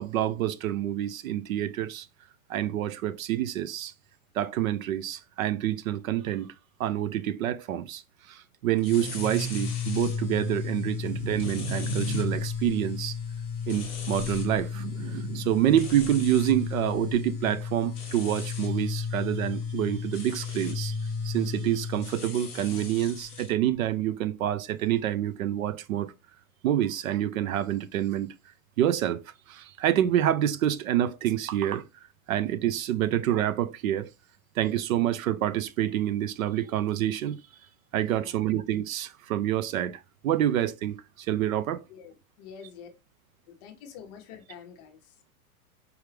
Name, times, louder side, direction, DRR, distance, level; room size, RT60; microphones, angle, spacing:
voice 1, 0.0-2.1 2.5-3.9 4.3-6.5 6.8-8.0 8.3-13.2 13.7-21.0 21.2-26.1 26.6-28.3 28.8-29.2 29.5-31.8 32.3-34.1 34.6-37.4 37.9-41.8, right 12 dB, 65° right, 0.6 m, -27 dB
sound 1, 8.8-23.5, left 6 dB, 10° left, 0.3 m, -33 dB
voice 2, 38.0-38.5 41.9-42.9 43.5-45.3, left 7 dB, 30° left, 0.8 m, -47 dB
4.7 x 3.4 x 3.3 m
supercardioid pair, 165°, 45 cm